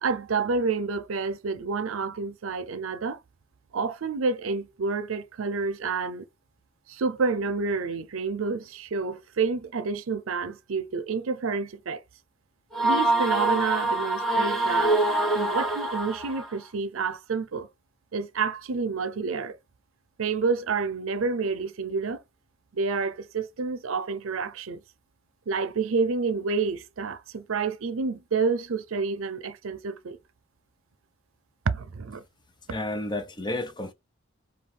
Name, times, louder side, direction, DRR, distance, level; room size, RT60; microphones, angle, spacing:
voice 1, 0.0-3.2 3.7-6.3 6.9-12.0 12.8-15.0 15.3-17.7 18.1-19.6 20.2-22.2 22.7-24.8 25.5-30.2 31.7-32.2, right 4 dB, 80° right, 0.6 m, -29 dB
sound 1, 12.7-16.5, right 2 dB, ahead, 1.1 m, -25 dB
voice 2, 32.7-33.9, left 2 dB, 20° left, 0.6 m, -31 dB
5.2 x 2.4 x 3.3 m
head